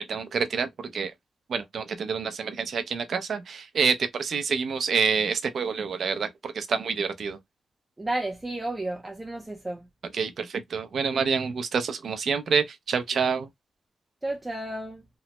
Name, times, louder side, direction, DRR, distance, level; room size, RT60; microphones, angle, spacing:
voice 1, 0.1-1.1 1.5-7.4 10.1-13.5, right 5 dB, 65° right, 0.5 m, -27 dB
voice 2, 8.0-9.9 14.2-15.0, right 1 dB, 15° right, 0.5 m, -32 dB
3.0 x 2.0 x 2.9 m
cardioid pair, 105°, 0 cm